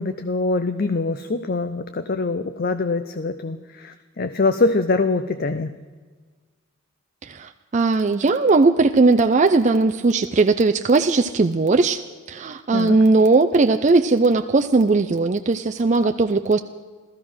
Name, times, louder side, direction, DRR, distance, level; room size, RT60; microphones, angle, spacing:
voice 1, 0.0-5.8 12.7-13.0, left 3 dB, 45° left, 10 dB, 0.5 m, -24 dB
voice 2, 7.2-12.0 12.3-16.6, right 3 dB, 35° right, 7 dB, 0.4 m, -18 dB
15.5 x 14.0 x 6.2 m, 1.4 s
head